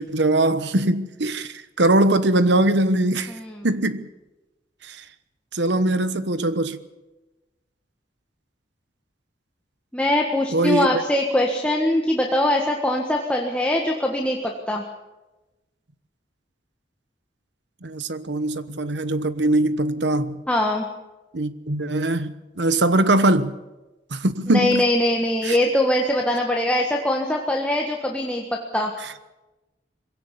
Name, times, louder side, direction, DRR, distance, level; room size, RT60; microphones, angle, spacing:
voice 1, 0.0-3.4 3.6-4.1 4.8-5.0 5.5-6.8 10.5-11.0 17.8-20.4 21.3-23.5 24.1-24.8 25.4-25.6, right 1 dB, 70° right, 1.1 m, -21 dB
voice 2, 3.3-3.6 9.9-14.8 20.5-20.9 24.5-28.9, left 1 dB, 5° left, 1.6 m, -22 dB
22.0 x 17.0 x 8.3 m
head